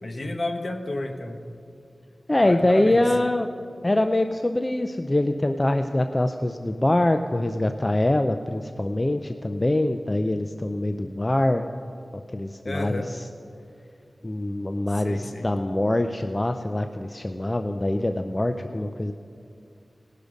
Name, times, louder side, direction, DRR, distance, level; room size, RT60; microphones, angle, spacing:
voice 1, 0.0-1.4 2.4-3.0 12.6-13.1 14.9-15.5, left 2 dB, 55° left, 4 dB, 1.2 m, -31 dB
voice 2, 2.3-3.5 3.8-11.7 12.1-13.2 14.2-19.1, left 1 dB, 30° left, 7 dB, 0.5 m, -24 dB
19.0 x 6.7 x 5.1 m, 2.4 s
cardioid pair, 40°, 0 cm